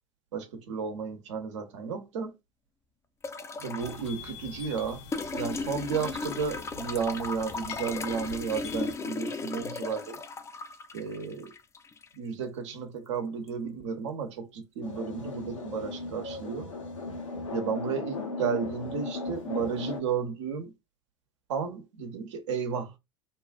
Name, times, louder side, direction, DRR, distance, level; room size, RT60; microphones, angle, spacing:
voice 1, 0.3-2.3 3.6-10.2 10.9-11.5 12.2-16.7 17.5-20.7 21.5-23.0, right 6 dB, 70° right, 0.9 m, -33 dB
sound 1, 3.2-4.1 5.1-12.1 13.5-13.6, left 4 dB, 15° left, 0.4 m, -36 dB
sound 2, 3.8-8.9, left 7 dB, 65° left, 1.0 m, -45 dB
sound 3, 14.8-20.0, left 3 dB, 90° left, 0.9 m, -36 dB
2.8 x 2.4 x 2.3 m
hypercardioid pair, 80°, 16 cm